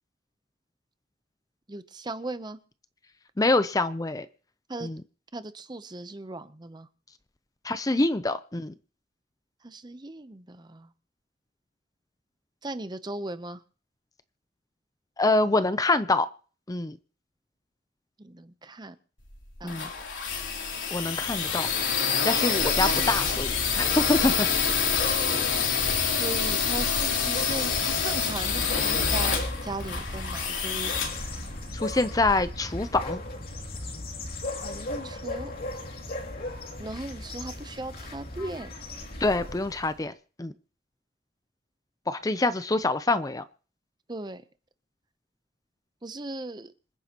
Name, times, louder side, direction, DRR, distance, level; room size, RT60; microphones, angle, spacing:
voice 1, 1.7-2.6 4.7-4.9 5.3-6.9 9.6-10.9 12.6-13.6 18.2-18.9 19.6-19.7 26.1-30.9 35.0-35.5 36.8-38.7 44.1-44.4 46.0-46.7, right 2 dB, 25° right, 12 dB, 0.7 m, -37 dB
voice 2, 3.4-4.3 4.8-5.0 7.6-8.7 15.2-16.3 16.7-17.0 19.6-19.9 20.9-21.7 22.2-24.5 31.7-33.2 39.2-40.1 40.4-40.5 42.1-43.4, left 2 dB, 20° left, 12 dB, 0.5 m, -25 dB
sound 1, 19.3-32.0, left 6 dB, 85° left, 3.2 m, -27 dB
sound 2, 22.7-40.0, left 1 dB, 50° left, 2.6 m, -37 dB
27.0 x 9.5 x 3.0 m, 0.40 s
head